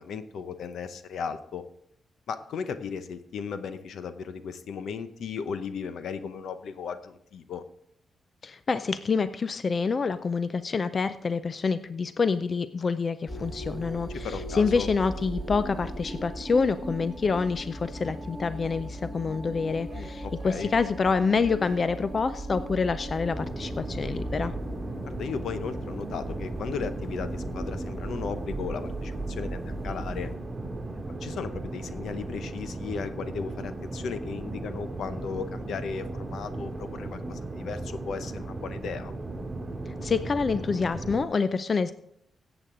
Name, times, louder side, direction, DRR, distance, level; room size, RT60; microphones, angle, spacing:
voice 1, 0.0-1.6 2.3-7.6 14.2-14.9 19.9-20.7 25.0-30.3 31.2-39.1, left 6 dB, 75° left, 11 dB, 0.8 m, -36 dB
voice 2, 8.4-24.5 39.9-41.9, left 5 dB, 40° left, 13 dB, 0.4 m, -27 dB
sound 1, 13.3-30.3, right 1 dB, 5° left, 2.2 m, -38 dB
sound 2, 19.8-24.3, right 5 dB, 50° right, 0.7 m, -49 dB
sound 3, 23.3-41.3, right 2 dB, 20° right, 2.2 m, -36 dB
15.5 x 8.0 x 3.8 m, 0.74 s
cardioid pair, 110°, 0 cm